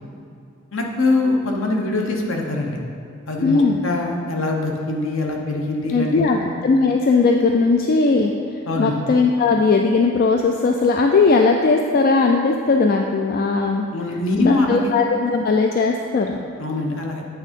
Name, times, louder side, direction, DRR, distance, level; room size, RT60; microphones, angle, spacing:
voice 1, 0.7-2.8 3.3-6.4 8.7-9.0 13.9-14.9 16.6-17.2, left 2 dB, 65° left, 1 dB, 0.9 m, -23 dB
voice 2, 3.4-3.8 5.9-8.3 8.8-13.9 14.4-16.4, left 4 dB, 45° left, 2 dB, 0.3 m, -18 dB
8.6 x 3.6 x 5.2 m, 2.5 s
head